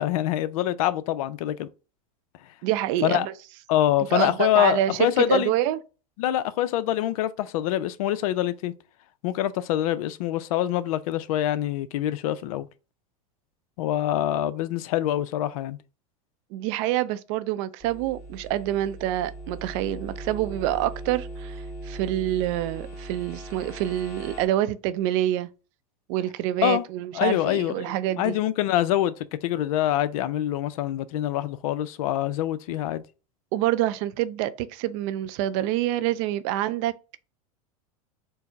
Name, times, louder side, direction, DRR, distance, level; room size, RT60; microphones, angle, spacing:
voice 1, 0.0-1.7 3.0-3.3 3.7-5.5 6.2-8.7 9.2-12.7 13.8-15.8 26.6-26.8 27.1-29.1 29.4-33.0, left 13 dB, 75° left, 0.4 m, -25 dB
voice 2, 2.6-3.3 4.1-5.8 16.5-25.5 26.1-28.4 33.5-36.9, right 13 dB, 60° right, 0.4 m, -26 dB
sound 1, 17.8-24.5, right 2 dB, 15° left, 1.1 m, -39 dB
4.5 x 2.0 x 4.4 m
supercardioid pair, 115°, 19 cm